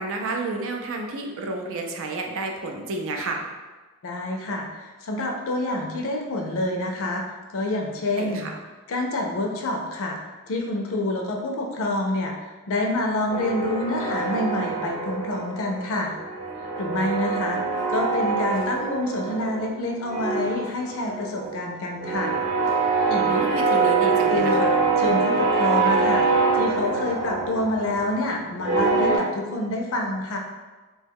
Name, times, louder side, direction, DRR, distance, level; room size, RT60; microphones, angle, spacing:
voice 1, 0.0-3.4 8.2-8.5 23.2-24.8, right 2 dB, 65° right, 2 dB, 0.4 m, -30 dB
voice 2, 4.0-4.6 5.0-7.2 7.5-8.5 8.9-10.2 10.5-12.3 12.7-16.1 16.6-17.6 17.9-22.3 23.1-23.4 24.3-24.7 25.0-26.2 26.5-30.4, left 2 dB, 65° left, 1 dB, 0.5 m, -27 dB
sound 1, 13.3-15.8 16.1-19.7 20.0-29.2, right 4 dB, 35° right, 0.7 m, -24 dB
3.0 x 2.2 x 3.4 m, 1.3 s
head